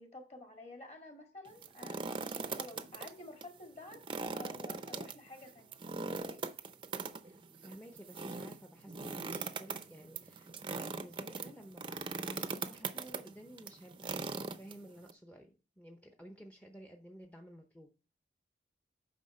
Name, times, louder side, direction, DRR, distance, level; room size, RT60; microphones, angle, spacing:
voice 1, 0.0-2.0 2.6-6.4, left 2 dB, 35° left, 2.0 m, -51 dB
sound 1, 1.5-3.1 3.4-3.5 3.9-15.1, right 4 dB, 25° right, 0.6 m, -40 dB
voice 2, 7.2-17.9, equal, 10° left, 0.7 m, -54 dB
9.4 x 5.8 x 4.3 m
head